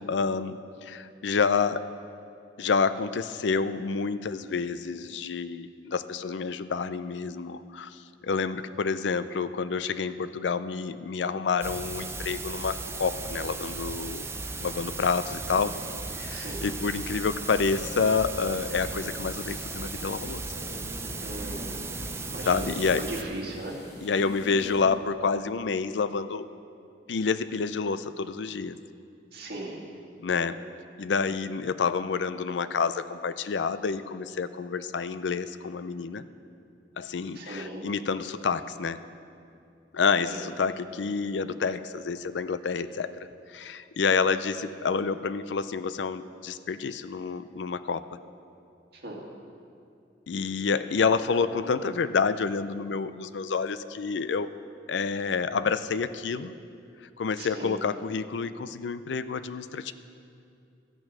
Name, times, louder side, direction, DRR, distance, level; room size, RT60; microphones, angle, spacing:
voice 1, 0.0-1.8 2.6-14.3 14.6-15.8 16.2-20.4 22.4-23.1 24.0-26.5 27.1-28.7 30.2-30.6 31.0-36.2 37.0-39.0 39.9-43.2 43.5-48.0 50.3-54.5 54.9-56.5 57.2-59.9, left 5 dB, 80° left, 13 dB, 0.5 m, -28 dB
sound 1, 11.6-23.2, right 3 dB, 15° right, 0.5 m, -36 dB
sound 2, 14.3-24.9 25.2-25.3, left 1 dB, 20° left, 2.4 m, -46 dB
voice 2, 16.3-16.6 21.2-22.7 23.0-23.7 29.3-29.8 37.4-37.8 40.3-40.4 48.9-49.2 57.4-57.8, right 1 dB, 60° right, -1 dB, 2.0 m, -38 dB
13.0 x 8.9 x 6.1 m, 2.5 s
head